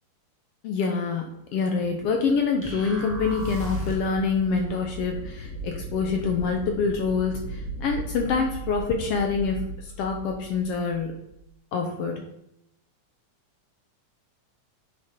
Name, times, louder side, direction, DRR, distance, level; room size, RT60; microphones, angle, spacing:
voice 1, 0.6-9.6 10.0-11.2 11.7-12.2, left 5 dB, 75° left, 3 dB, 1.4 m, -26 dB
sound 1, 1.5-11.5, right 2 dB, 60° left, 2.0 m, -38 dB
sound 2, 2.6-4.2, left 1 dB, 5° right, 1.2 m, -33 dB
9.7 x 3.7 x 4.3 m, 0.80 s
omnidirectional pair, 3.5 m